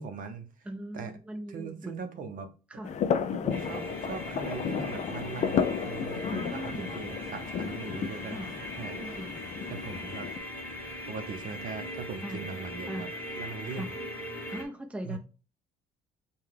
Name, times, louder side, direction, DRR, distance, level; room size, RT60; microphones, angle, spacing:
voice 1, 0.0-0.5 0.9-1.1 1.5-2.5 3.3-8.4 8.7-9.0 9.7-10.3 11.1-13.1 13.3-13.9 15.0-15.2, right 5 dB, 55° right, 7 dB, 0.7 m, -40 dB
voice 2, 0.6-2.2 2.7-2.9 6.3-7.0 8.2-8.5 9.0-9.4 12.2-12.5 12.9-13.1 13.7-13.9 14.5-15.2, right 1 dB, 5° right, 4 dB, 0.6 m, -39 dB
sound 1, 2.8-10.4, left 7 dB, 45° left, 0.4 m, -33 dB
sound 2, 3.5-14.6, equal, 10° left, 1.3 m, -40 dB
5.5 x 2.2 x 3.2 m, 0.35 s
cardioid pair, 110°, 17 cm